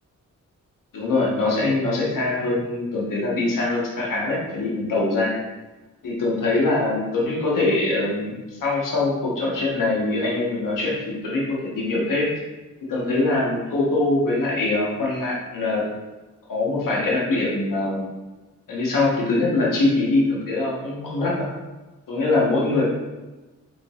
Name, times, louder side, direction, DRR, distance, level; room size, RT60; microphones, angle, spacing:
voice 1, 0.9-5.4 6.0-12.3 12.8-15.8 16.5-18.1 18.7-21.5 22.1-22.8, left 2 dB, 80° left, -4 dB, 1.0 m, -23 dB
3.7 x 3.7 x 2.3 m, 1.2 s
cardioid pair, 60°, 32 cm